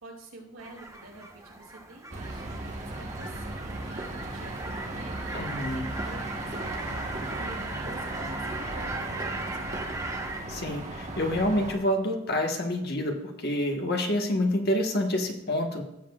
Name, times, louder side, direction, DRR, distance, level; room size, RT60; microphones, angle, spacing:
voice 1, 0.0-10.0, right 2 dB, 80° right, 0 dB, 2.5 m, -47 dB
sound 1, 0.6-10.4, right 2 dB, 15° right, 0.9 m, -39 dB
sound 2, 2.1-11.8, right 2 dB, 35° right, 1.2 m, -36 dB
voice 2, 5.3-5.9 10.5-15.8, left 1 dB, 50° left, 2 dB, 1.4 m, -28 dB
16.0 x 7.5 x 2.4 m, 0.89 s
head